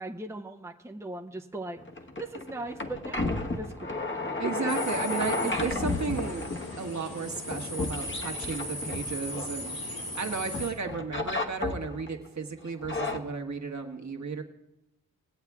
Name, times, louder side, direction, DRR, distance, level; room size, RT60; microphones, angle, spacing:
voice 1, 0.0-1.8 2.2-4.1 4.4-4.7, right 2 dB, 5° right, 3 dB, 0.7 m, -39 dB
sound 1, 1.8-10.2 10.5-12.2 12.7-13.2, left 2 dB, 30° left, 1.2 m, -33 dB
voice 2, 4.4-6.5 6.8-9.8 10.2-14.4, right 4 dB, 50° right, 4 dB, 1.4 m, -34 dB
sound 2, 4.7-10.7, left 1 dB, 65° left, 2.9 m, -38 dB
20.0 x 8.1 x 3.6 m, 0.90 s
cardioid pair, 55°, 37 cm